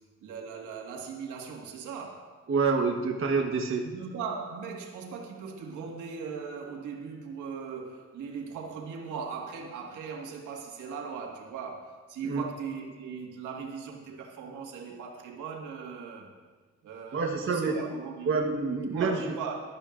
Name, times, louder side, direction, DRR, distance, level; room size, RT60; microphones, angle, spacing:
voice 1, 0.2-2.4 3.8-16.3 16.8-18.4 18.9-19.6, right 6 dB, 80° right, 1 dB, 1.8 m, -39 dB
voice 2, 2.5-3.8 12.2-12.4 17.1-17.8 18.3-19.3, right 4 dB, 45° right, 1 dB, 1.3 m, -27 dB
15.5 x 12.5 x 2.6 m, 1.4 s
cardioid pair, 90°, 30 cm